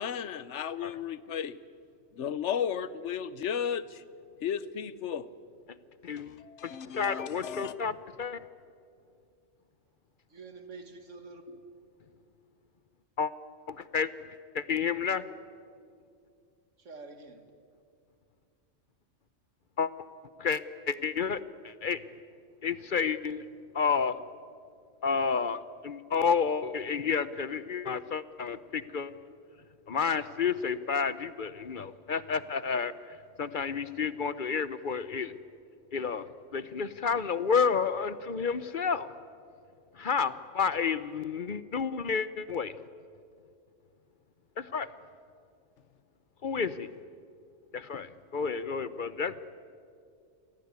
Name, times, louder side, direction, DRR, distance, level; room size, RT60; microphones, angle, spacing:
voice 1, 0.0-1.6 2.2-4.0 4.4-5.3 6.2-7.7, left 8 dB, 75° left, 17 dB, 1.1 m, -34 dB
voice 2, 6.0-8.4 13.2-13.3 13.7-14.1 14.5-15.2 19.8-19.9 20.4-22.0 22.6-23.4 23.7-24.2 25.0-29.1 29.9-35.3 35.9-36.3 36.5-39.1 39.9-42.8 44.6-44.9 46.4-46.9 47.7-49.5, left 6 dB, 50° left, 15 dB, 0.8 m, -30 dB
voice 3, 10.3-11.6 16.8-17.4, right 3 dB, 85° right, 8 dB, 2.2 m, -47 dB
27.0 x 18.0 x 9.5 m, 2.4 s
omnidirectional pair, 1.2 m